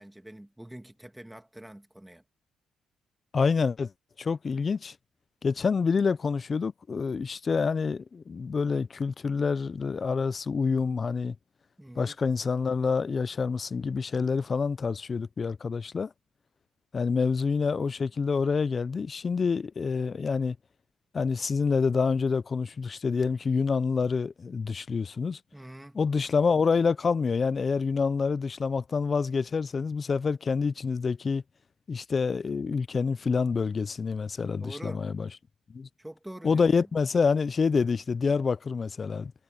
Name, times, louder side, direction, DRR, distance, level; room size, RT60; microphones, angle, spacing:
voice 1, 0.0-2.2 11.8-12.2 25.5-26.0 34.6-35.0 36.0-36.7, right 1 dB, 5° right, 2.1 m, -45 dB
voice 2, 3.3-3.9 4.2-4.9 5.4-11.4 12.0-16.1 16.9-20.6 21.1-25.4 25.9-31.4 31.9-35.3 35.7-35.9 36.4-39.3, left 5 dB, 40° left, 0.5 m, -27 dB
cardioid pair, 90°, 0 cm